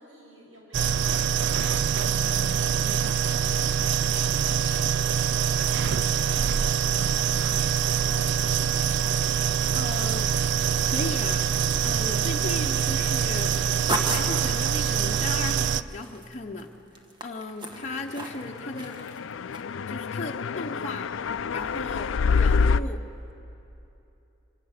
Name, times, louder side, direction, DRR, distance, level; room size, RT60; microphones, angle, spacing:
voice 1, 0.0-1.6, equal, 85° right, -2 dB, 6.3 m, -53 dB
sound 1, 0.7-15.8, right 8 dB, 60° right, 0.4 m, -24 dB
voice 2, 9.7-10.3 10.8-11.5 11.8-13.5 14.0-16.7 17.2-19.0 19.9-21.1 21.5-23.0, left 2 dB, 35° left, 0 dB, 0.9 m, -36 dB
sound 2, 13.3-16.6 17.0-18.5 18.8-19.2 19.5-19.6, right 1 dB, 25° right, 1.6 m, -34 dB
sound 3, 18.3-22.8, left 5 dB, 70° left, 0.4 m, -26 dB
25.5 x 18.5 x 6.6 m, 2.9 s
head